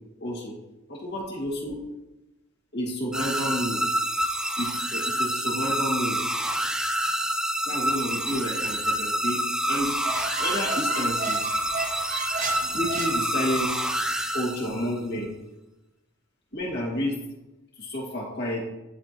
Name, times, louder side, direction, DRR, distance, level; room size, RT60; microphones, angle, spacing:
voice 1, 0.2-0.5 0.9-1.8 2.7-3.8 4.6-6.2 7.7-9.4 9.7-9.9 10.4-11.5 12.6-13.8 14.3-15.3 16.5-17.2 17.8-18.6, equal, 50° left, -5 dB, 2.0 m, -30 dB
sound 1, 3.1-15.0, right 1 dB, 5° right, 0.4 m, -27 dB
Squeak, 9.8-13.8, right 4 dB, 40° right, 0.8 m, -34 dB
11.0 x 4.7 x 3.0 m, 0.99 s
head